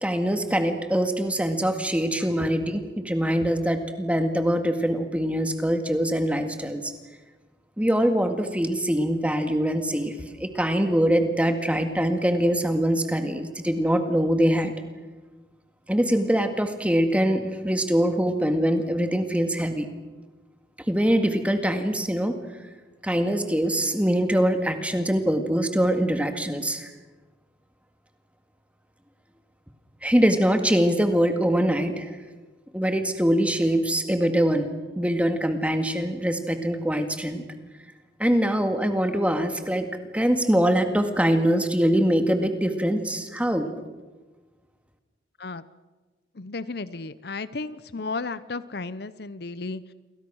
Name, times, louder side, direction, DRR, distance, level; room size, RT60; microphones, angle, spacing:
voice 1, 0.0-6.9 7.8-14.7 15.9-19.9 20.9-22.3 23.0-26.9 30.0-32.2 32.7-34.7 35.0-37.4 38.2-39.9 40.1-43.7, equal, 5° right, 6 dB, 2.0 m, -23 dB
voice 2, 46.4-49.9, left 3 dB, 60° left, 15 dB, 0.7 m, -34 dB
29.5 x 23.0 x 6.4 m, 1.2 s
head